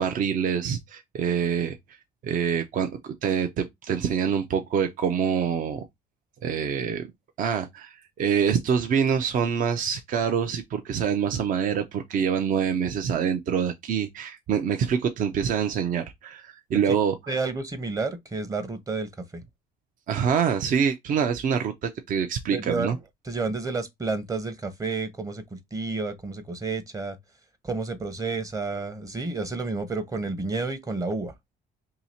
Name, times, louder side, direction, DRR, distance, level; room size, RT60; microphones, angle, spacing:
voice 1, 0.0-2.0 2.2-5.9 6.4-7.1 7.4-17.1 20.1-23.0, right 7 dB, 50° right, 0.6 m, -26 dB
voice 2, 17.3-19.4 22.5-27.2 27.6-31.3, right 3 dB, 20° right, 0.8 m, -30 dB
2.8 x 2.8 x 4.2 m
cardioid pair, 110°, 17 cm